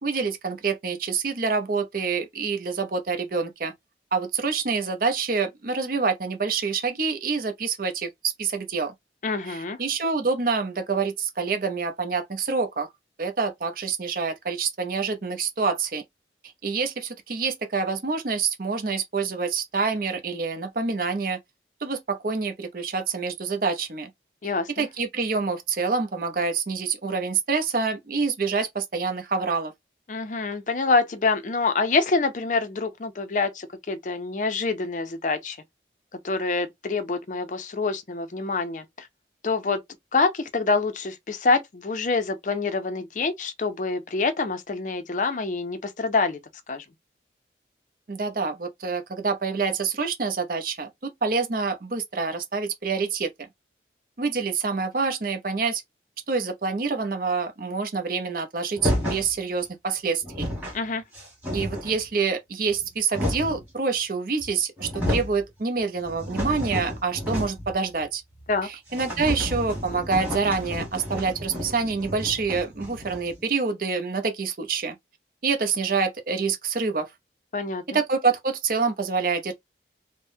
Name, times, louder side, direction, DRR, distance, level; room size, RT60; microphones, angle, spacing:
voice 1, 0.0-3.7 4.1-8.9 9.5-12.9 13.2-16.0 16.6-21.4 21.8-24.1 24.4-24.5 24.8-29.7 48.1-53.5 54.2-55.8 56.3-60.5 61.5-68.2 68.6-75.0 75.4-77.1 77.9-79.5, right 4 dB, 50° right, 0.6 m, -27 dB
voice 2, 9.2-9.8 24.4-24.9 30.1-35.6 36.2-39.1 39.4-39.8 40.1-46.4 46.7-46.8 60.7-61.0 68.5-68.7 77.5-77.8, left 3 dB, 45° left, 0.5 m, -26 dB
sound 1, 58.8-59.3 60.0-60.1 60.2-60.8 61.1-62.0 62.7-63.6 64.4-64.5 64.8-65.4 65.8-67.7 68.0-68.1 68.4-68.5 68.9-73.4, equal, 10° right, 1.6 m, -31 dB
3.4 x 2.1 x 2.7 m
head